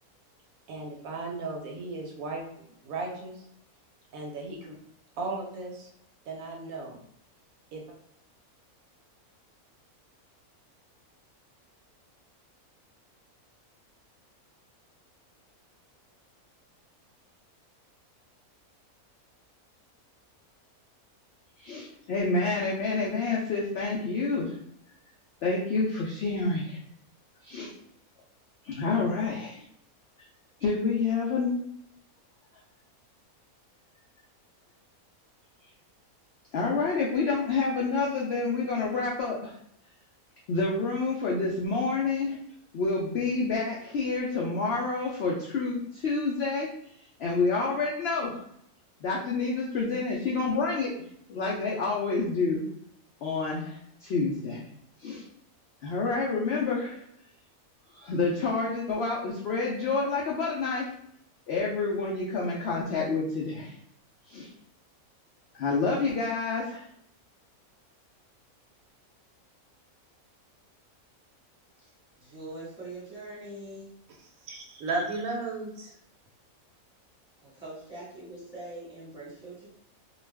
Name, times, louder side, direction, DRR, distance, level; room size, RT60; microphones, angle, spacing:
voice 1, 0.7-2.4 2.8-3.4 4.1-4.7 5.2-5.9 6.3-7.0 7.7-7.8 74.4-75.9, right 3 dB, 75° right, 1 dB, 1.0 m, -35 dB
voice 2, 21.6-24.6 25.4-26.8 27.4-27.7 28.6-29.6 30.6-31.5 36.5-39.6 40.5-42.4 42.7-46.7 47.2-48.3 49.0-50.9 51.3-52.6 53.2-54.6 55.0-55.2 55.8-57.0 57.9-60.9 61.5-63.7 64.3-64.5 65.5-66.8, left 4 dB, 70° left, -4 dB, 0.6 m, -28 dB
voice 3, 72.2-73.9 77.4-79.7, right 2 dB, 5° right, -9 dB, 1.2 m, -43 dB
2.3 x 2.3 x 3.2 m, 0.71 s
omnidirectional pair, 1.5 m